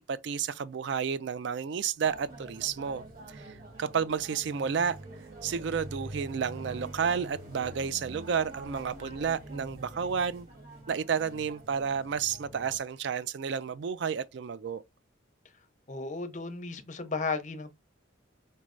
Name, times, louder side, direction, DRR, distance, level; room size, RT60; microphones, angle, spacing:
voice 1, 0.0-5.0 5.4-10.5 10.9-14.8, right 6 dB, 60° right, 0.3 m, -31 dB
sound 1, 2.0-12.8, right 1 dB, 45° right, 1.5 m, -45 dB
voice 2, 15.9-17.7, left 4 dB, 35° left, 0.6 m, -34 dB
4.4 x 3.1 x 2.5 m
head